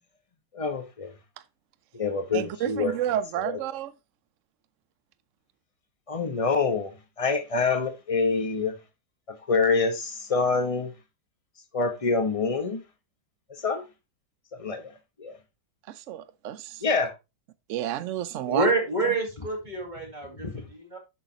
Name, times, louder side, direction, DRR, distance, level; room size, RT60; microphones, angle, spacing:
voice 1, 0.5-1.1 1.9-2.9 3.4-3.6 6.1-6.9 7.2-8.7 9.3-10.9 11.7-12.8 13.6-13.8 14.5-14.8 15.2-15.3 16.8-17.1 20.4-20.6, left 4 dB, 25° left, 0.9 m, -26 dB
voice 2, 2.3-3.9 15.9-16.8 17.7-18.7 19.0-19.1, right 12 dB, 65° right, 0.7 m, -30 dB
voice 3, 18.5-21.0, right 2 dB, 25° right, 2.2 m, -27 dB
9.9 x 6.5 x 2.9 m
omnidirectional pair, 2.1 m